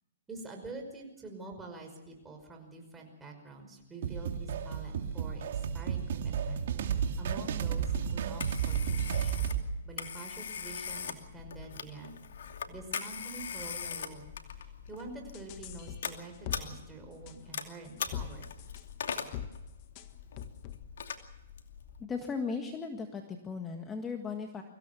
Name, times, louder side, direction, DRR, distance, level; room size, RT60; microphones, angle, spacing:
voice 1, 0.3-9.4 9.8-12.2 12.7-14.3 14.6-18.5, right 3 dB, 10° right, 2 dB, 5.5 m, -46 dB
sound 1, 4.0-9.6, right 7 dB, 60° right, 2.5 m, -32 dB
Telephone, 7.8-22.0, left 7 dB, 75° left, 2.6 m, -42 dB
sound 2, 15.3-16.6 17.3-18.3 18.6-18.8 19.2-19.5 20.0-20.1 20.4-20.8, left 10 dB, 40° left, 1.6 m, -41 dB
voice 2, 22.0-24.6, left 5 dB, 15° left, 4 dB, 1.8 m, -37 dB
24.5 x 16.5 x 7.1 m, 0.96 s
hypercardioid pair, 140°, 0 cm